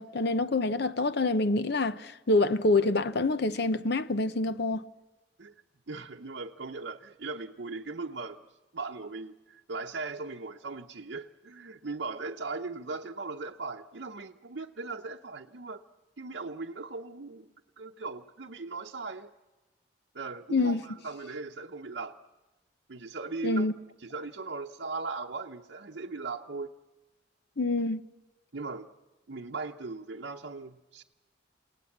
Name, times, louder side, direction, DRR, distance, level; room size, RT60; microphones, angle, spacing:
voice 1, 0.0-4.9 20.5-20.8 23.4-23.7 27.6-28.0, left 2 dB, 65° left, 0.8 m, -26 dB
voice 2, 5.9-8.4 8.7-15.8 16.2-17.5 17.8-19.3 20.1-22.2 22.9-23.7 24.0-26.7 28.5-28.9 29.3-31.0, right 3 dB, 70° right, 0.8 m, -38 dB
29.0 x 18.0 x 7.3 m
head